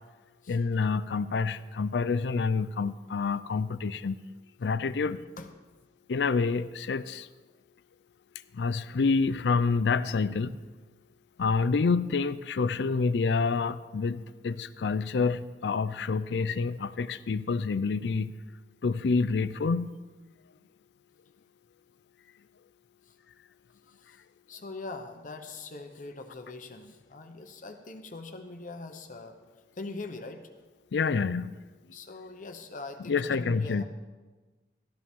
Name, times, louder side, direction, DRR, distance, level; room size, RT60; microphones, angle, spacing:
voice 1, 0.5-4.2 4.6-5.2 6.1-7.3 8.5-10.6 11.4-18.3 18.8-19.9 30.9-31.5 33.0-33.8, left 4 dB, 75° left, 15 dB, 0.4 m, -28 dB
voice 2, 5.1-5.5 23.1-23.2 24.0-24.2 24.5-29.4 29.7-30.5 31.9-33.8, left 3 dB, 45° left, 6 dB, 0.8 m, -42 dB
13.0 x 12.5 x 3.6 m, 1.3 s
head